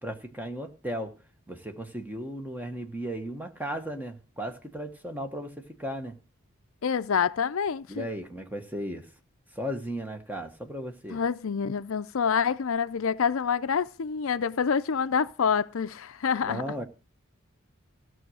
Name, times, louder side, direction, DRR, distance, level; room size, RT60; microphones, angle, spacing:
voice 1, 0.0-1.1 1.5-6.2 7.9-9.1 9.5-11.2 16.4-16.8, equal, 10° right, 1.2 m, -35 dB
voice 2, 6.8-8.1 11.1-16.6, left 6 dB, 70° left, 0.5 m, -27 dB
15.0 x 6.2 x 6.3 m
head